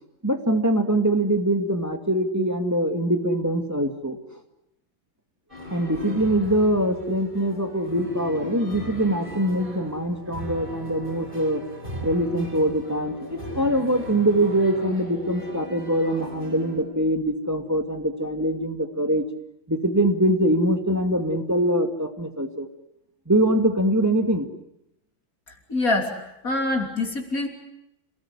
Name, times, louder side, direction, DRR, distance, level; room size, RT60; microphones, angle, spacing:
voice 1, 0.2-4.2 5.7-11.6 12.0-19.3 19.7-22.7 23.3-24.5, right 1 dB, 10° right, 5 dB, 2.2 m, -23 dB
sound 1, 5.5-16.8, left 1 dB, 25° right, 7.2 m, -38 dB
voice 2, 25.7-26.1 26.4-27.5, left 2 dB, 45° left, 4 dB, 3.6 m, -24 dB
27.5 x 19.0 x 9.8 m, 0.83 s
omnidirectional pair, 2.1 m